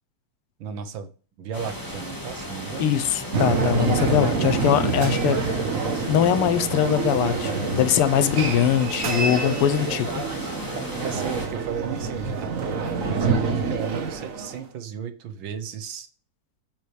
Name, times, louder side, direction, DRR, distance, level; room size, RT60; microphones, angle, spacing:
voice 1, 0.6-1.1 1.4-2.9 11.0-16.1, right 7 dB, 65° right, 1.7 m, -34 dB
sound 1, 1.5-11.5, left 1 dB, 10° left, 1.7 m, -36 dB
voice 2, 2.8-10.2, left 10 dB, 85° left, 1.8 m, -22 dB
sound 2, 3.3-14.6, right 4 dB, 45° right, 1.4 m, -26 dB
8.7 x 7.7 x 3.4 m
omnidirectional pair, 2.4 m